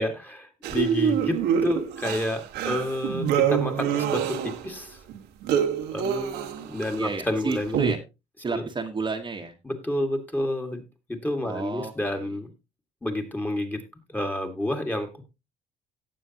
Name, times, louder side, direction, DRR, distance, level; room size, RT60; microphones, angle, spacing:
voice 1, 0.0-5.0 5.9-6.3 6.6-7.8 8.5-8.6 9.6-10.8 11.1-12.5 13.0-13.8 14.1-15.2, left 1 dB, 10° left, 4 dB, 2.0 m, -29 dB
sound 1, 0.6-4.8 5.1-7.0 7.5-7.9, right 8 dB, 85° right, 1.7 m, -26 dB
voice 2, 6.0-8.0 8.4-9.5 11.4-12.4, right 4 dB, 25° right, 3 dB, 1.4 m, -32 dB
17.5 x 7.0 x 2.9 m, 0.25 s
cardioid pair, 110°, 17 cm